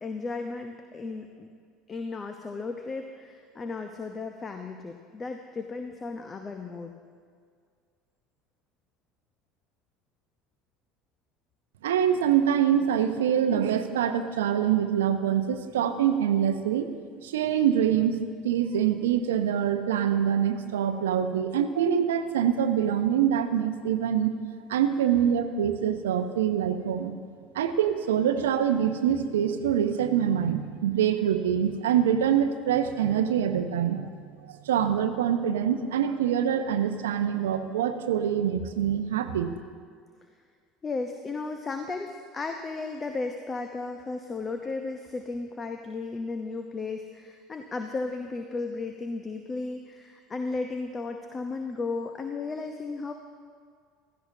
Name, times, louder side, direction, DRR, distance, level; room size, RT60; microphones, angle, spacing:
voice 1, 0.0-1.5 1.9-6.9 40.8-53.1, left 3 dB, 25° left, 5 dB, 0.8 m, -34 dB
voice 2, 11.8-16.9 17.2-24.3 24.7-27.1 27.5-34.0 34.4-39.5, right 9 dB, 70° right, 9 dB, 0.7 m, -25 dB
16.0 x 14.0 x 2.8 m, 2.1 s
figure-of-eight pair, 70°, 0 cm